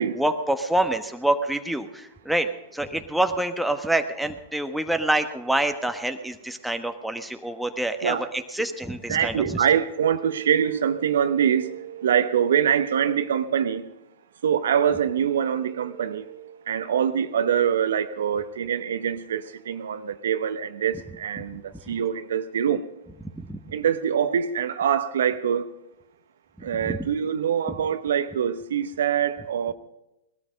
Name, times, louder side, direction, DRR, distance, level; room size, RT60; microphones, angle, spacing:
voice 1, 0.2-2.5 2.7-9.6 23.4-23.7 26.8-27.0, right 1 dB, ahead, 1.2 m, -26 dB
voice 2, 9.1-13.8 14.4-22.8 23.7-25.7 26.6-29.7, right 8 dB, 75° right, 0.9 m, -24 dB
19.0 x 13.0 x 5.3 m
hypercardioid pair, 110°, 0 cm